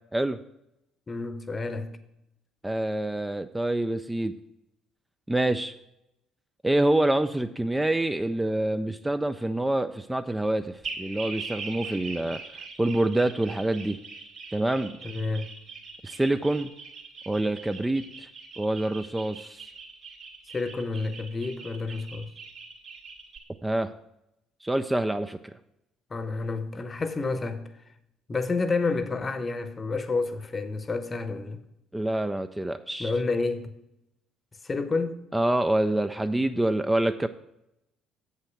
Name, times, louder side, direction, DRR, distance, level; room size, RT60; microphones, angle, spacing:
voice 1, 1.1-1.9 15.0-15.5 20.5-22.3 26.1-27.7 28.3-31.6 33.0-33.8 34.6-35.2, left 3 dB, 30° left, 0.8 m, -29 dB
voice 2, 2.6-4.3 5.3-5.7 6.6-12.4 12.8-14.0 14.5-15.0 16.0-16.7 17.3-18.3 18.6-19.7 23.6-23.9 24.6-25.4 31.9-33.1 35.3-37.3, right 1 dB, 10° right, 0.4 m, -26 dB
sound 1, 10.8-23.4, right 4 dB, 50° right, 2.4 m, -41 dB
7.8 x 5.7 x 5.9 m
figure-of-eight pair, 50°, 0 cm